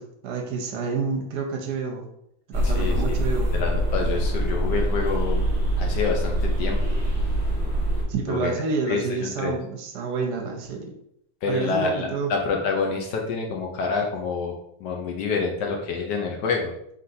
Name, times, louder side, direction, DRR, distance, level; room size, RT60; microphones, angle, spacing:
voice 1, 0.0-2.0 2.5-3.6 8.1-10.9 11.5-12.3, right 4 dB, 65° right, 2 dB, 1.1 m, -29 dB
sound 1, 2.5-8.0, equal, ahead, 1.0 m, -24 dB
voice 2, 2.6-3.2 3.5-5.4 5.8-6.8 8.3-9.5 11.4-14.5 14.8-16.7, left 4 dB, 70° left, 1 dB, 1.1 m, -27 dB
4.3 x 3.8 x 2.7 m, 0.77 s
omnidirectional pair, 2.1 m